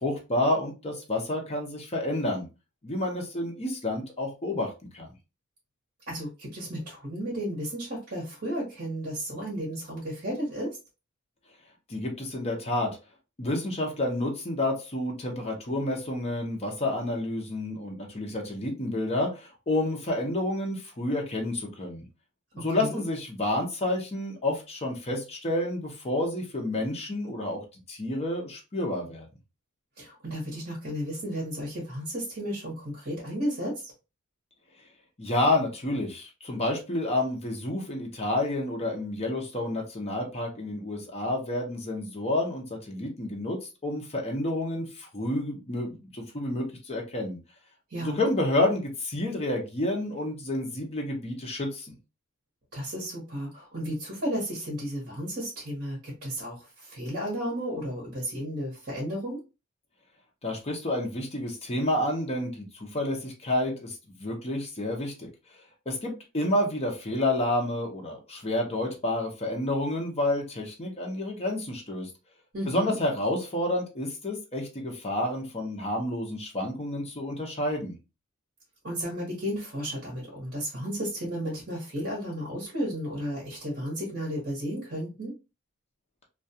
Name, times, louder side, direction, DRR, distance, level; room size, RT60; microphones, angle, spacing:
voice 1, 0.0-2.5 2.8-5.1 11.9-12.9 13.4-22.0 22.5-27.6 27.9-29.3 35.2-47.4 48.0-51.9 60.4-65.3 65.9-72.1 72.7-78.0, left 1 dB, 30° left, 0 dB, 0.7 m, -29 dB
voice 2, 6.1-10.7 22.7-23.0 30.0-33.9 47.9-48.3 52.7-59.4 72.5-72.9 78.8-85.3, equal, 50° right, -4 dB, 1.0 m, -33 dB
2.3 x 2.3 x 2.6 m, 0.29 s
head